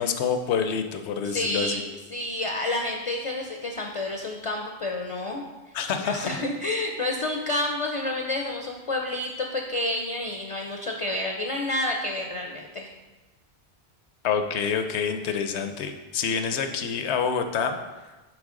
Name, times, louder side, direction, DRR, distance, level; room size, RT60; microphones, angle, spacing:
voice 1, 0.0-1.8 5.7-6.4 14.2-17.8, left 6 dB, 85° left, 7 dB, 0.9 m, -27 dB
voice 2, 1.2-5.4 6.0-12.9 16.5-16.7, left 1 dB, 50° left, 2 dB, 0.4 m, -29 dB
8.6 x 3.3 x 3.7 m, 1.2 s
omnidirectional pair, 1.1 m